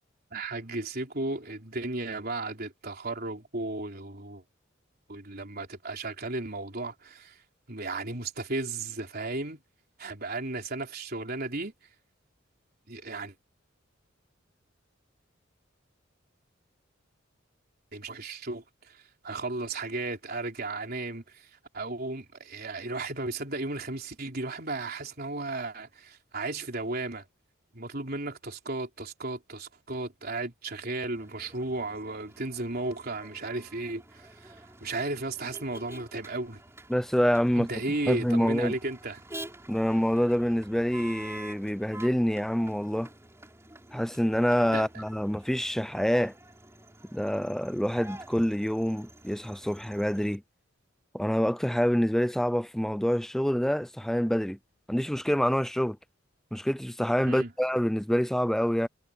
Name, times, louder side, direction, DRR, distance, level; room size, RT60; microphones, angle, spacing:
voice 1, 0.3-4.4 5.1-7.4 7.7-9.6 10.0-11.7 12.9-13.3 17.9-27.3 27.7-36.6 37.6-39.2 44.7-45.0 57.2-57.5, right 2 dB, 50° right, 3.9 m, -35 dB
Motor vehicle (road), 31.1-50.4, right 1 dB, 15° right, 3.6 m, -49 dB
voice 2, 36.9-37.7 38.1-38.7 39.7-43.1 43.9-46.4 47.1-50.4 51.1-54.6 54.9-56.0 56.5-58.9, equal, ahead, 0.4 m, -26 dB
head